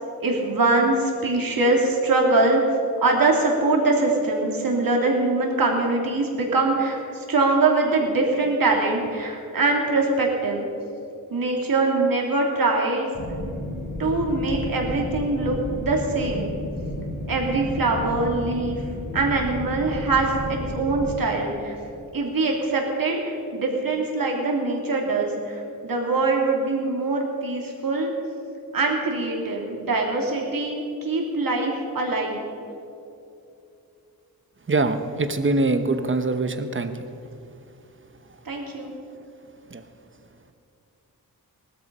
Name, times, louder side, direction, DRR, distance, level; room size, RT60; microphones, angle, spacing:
voice 1, 0.2-2.6 3.0-10.7 11.3-13.1 14.0-16.5 17.3-18.8 19.1-21.7 22.1-28.1 28.7-32.4 38.4-38.9, right 3 dB, 65° right, 0 dB, 2.9 m, -23 dB
sound 1, 13.1-21.1, left 1 dB, 30° left, 3.4 m, -32 dB
voice 2, 34.7-37.1 39.7-39.8, right 2 dB, 35° right, 9 dB, 1.0 m, -24 dB
18.5 x 12.5 x 5.5 m, 2.7 s
wide cardioid pair, 130°, 36 cm